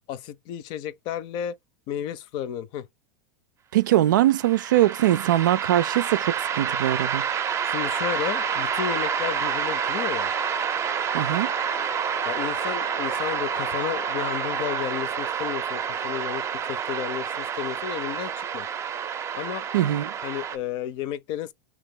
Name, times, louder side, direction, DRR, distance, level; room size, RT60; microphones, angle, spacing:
voice 1, 0.1-1.6 1.9-2.9 7.6-10.3 12.3-18.7 19.3-19.7 20.2-21.5, left 10 dB, 55° left, 0.6 m, -32 dB
voice 2, 3.7-7.3 11.1-11.5 19.7-20.1, right 13 dB, 80° right, 0.4 m, -22 dB
sound 1, 4.2-20.6, right 8 dB, 30° right, 0.6 m, -28 dB
sound 2, 7.7-14.9, left 10 dB, 85° left, 0.8 m, -40 dB
3.0 x 3.0 x 3.6 m
hypercardioid pair, 105°, 10 cm